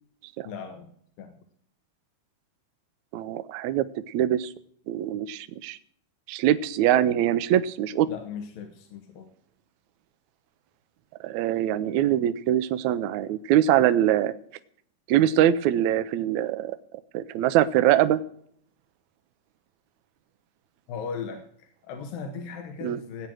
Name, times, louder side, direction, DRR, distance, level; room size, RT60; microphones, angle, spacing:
voice 1, 0.4-0.9 1.2-1.3 8.1-9.3 20.9-23.3, left 6 dB, 85° left, 5 dB, 3.1 m, -37 dB
voice 2, 3.1-4.5 4.9-5.8 6.3-8.1 11.2-14.3 15.1-16.8 17.1-18.2 22.8-23.0, right 11 dB, 80° right, 12 dB, 1.8 m, -23 dB
16.0 x 8.9 x 6.2 m, 0.64 s
omnidirectional pair, 3.9 m